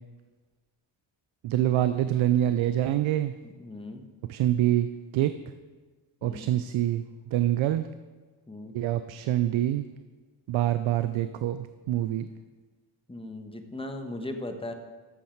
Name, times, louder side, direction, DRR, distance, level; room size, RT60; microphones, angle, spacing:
voice 1, 1.4-3.3 4.2-5.3 6.2-7.0 7.3-7.9 8.7-9.9 10.5-12.3, right 12 dB, 75° right, 12 dB, 0.5 m, -25 dB
voice 2, 3.4-4.0 6.2-6.5 8.5-8.7 13.1-14.7, left 1 dB, 10° left, 6 dB, 1.2 m, -38 dB
13.0 x 6.5 x 4.5 m, 1.3 s
cardioid pair, 70°, 47 cm